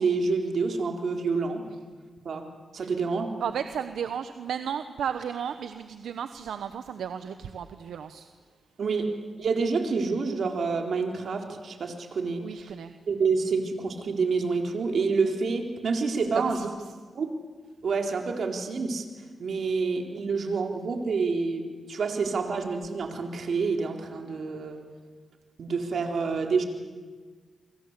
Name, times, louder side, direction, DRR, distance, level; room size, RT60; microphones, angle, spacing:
voice 1, 0.0-1.6 2.2-2.4 2.7-3.3 8.8-9.1 9.4-12.7 13.1-16.7 17.1-17.3 17.8-19.0 19.4-24.8 25.6-26.6, right 4 dB, 70° right, 3 dB, 4.2 m, -28 dB
voice 2, 3.4-8.3 12.4-12.9 16.2-17.0, right 8 dB, 90° right, 9 dB, 1.0 m, -34 dB
28.5 x 25.0 x 8.4 m, 1.5 s
cardioid pair, 70°, 0 cm